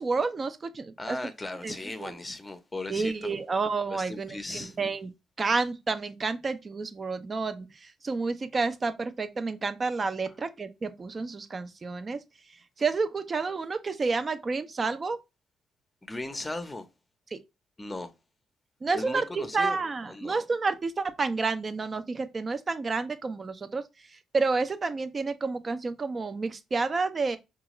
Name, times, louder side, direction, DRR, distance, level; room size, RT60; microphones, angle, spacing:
voice 1, 0.0-1.2 1.6-1.8 2.0-2.1 2.9-5.1 5.4-12.2 12.8-15.2 17.3-17.4 18.8-23.8 24.1-27.4, right 4 dB, 35° right, 0.5 m, -30 dB
voice 2, 1.0-3.1 3.9-4.8 16.0-16.9 17.8-18.1 18.9-19.8 20.1-20.4, left 2 dB, 15° left, 0.7 m, -37 dB
4.8 x 2.4 x 3.0 m
cardioid pair, 90°, 0 cm